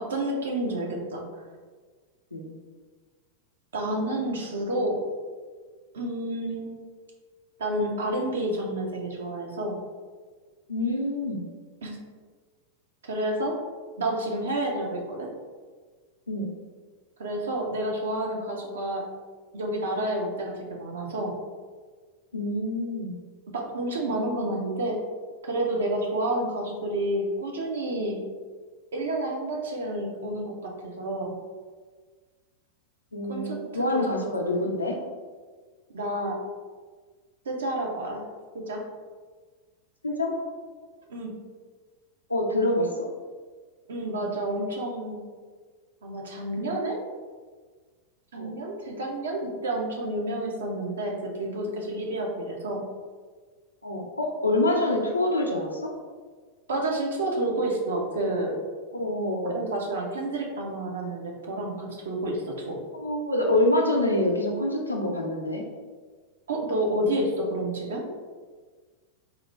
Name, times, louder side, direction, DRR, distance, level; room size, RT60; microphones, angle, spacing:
voice 1, 0.0-1.4 3.7-5.0 5.9-6.7 7.6-9.8 11.8-12.0 13.1-13.6 14.0-15.3 17.2-19.0 19.5-21.3 23.5-25.0 25.4-28.2 28.9-31.4 33.3-33.6 33.9-34.2 35.9-36.4 37.5-38.2 38.5-38.8 41.1-41.3 43.9-45.2 46.0-47.0 48.3-52.8 56.7-58.6 59.5-62.8 66.5-68.0, right 1 dB, 65° right, 0 dB, 0.6 m, -29 dB
voice 2, 10.7-11.4 16.3-16.5 22.3-23.1 33.1-34.9 40.0-40.3 42.3-42.9 48.4-48.5 53.8-55.8 58.9-59.6 62.9-65.6, left 1 dB, 85° left, 0 dB, 0.5 m, -26 dB
3.8 x 2.1 x 3.1 m, 1.5 s
figure-of-eight pair, 90°, 0 cm